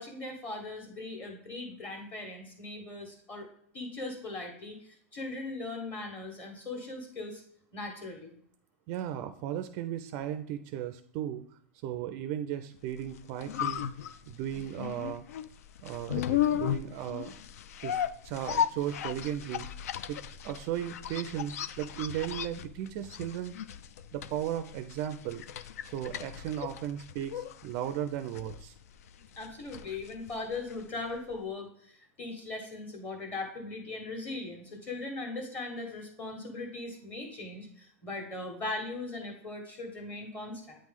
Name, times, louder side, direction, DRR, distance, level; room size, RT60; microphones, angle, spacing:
voice 1, 0.0-3.5 3.7-7.4 7.7-8.4 29.4-40.8, left 2 dB, 20° left, 2 dB, 1.6 m, -39 dB
voice 2, 8.9-11.4 11.8-13.8 14.3-15.2 15.8-17.3 17.8-19.7 20.1-20.2 20.4-23.5 24.1-25.4 25.9-28.7, right 11 dB, 35° right, 9 dB, 0.4 m, -36 dB
sound 1, 13.0-31.0 31.3-31.4, left 9 dB, 80° left, 0.4 m, -36 dB
8.7 x 3.1 x 3.6 m, 0.64 s
supercardioid pair, 160°, 8 cm